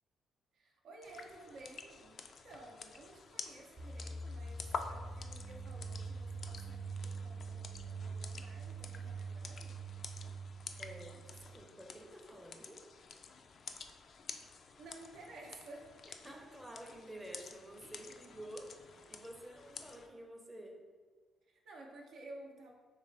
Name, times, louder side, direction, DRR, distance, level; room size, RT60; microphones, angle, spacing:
voice 1, 0.5-9.8 13.7-13.9 14.8-15.9 21.5-22.7, right 2 dB, 70° right, 0 dB, 0.7 m, -54 dB
sound 1, 1.0-20.1, left 5 dB, 55° left, 0.3 m, -50 dB
sound 2, 3.8-11.5, right 4 dB, 30° right, 1.0 m, -44 dB
voice 2, 10.8-12.9 16.2-20.8, right 1 dB, 10° right, 1 dB, 0.6 m, -50 dB
4.1 x 3.2 x 3.3 m, 1.5 s
cardioid pair, 90°, 0 cm